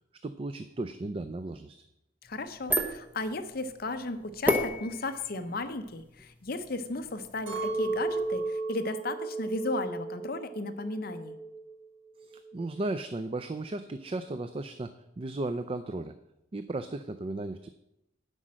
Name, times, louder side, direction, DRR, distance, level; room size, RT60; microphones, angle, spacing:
voice 1, 0.2-1.8 12.2-16.2 16.5-17.7, right 2 dB, 30° right, 9 dB, 0.4 m, -35 dB
voice 2, 2.2-11.3, left 2 dB, 50° left, 9 dB, 0.7 m, -35 dB
sound 1, 2.3-8.5, equal, 10° right, 0.9 m, -35 dB
Chink clink, 7.5-11.8 12.1-12.9, right 3 dB, 85° right, 3.6 m, -34 dB
9.9 x 5.3 x 7.5 m, 0.86 s
head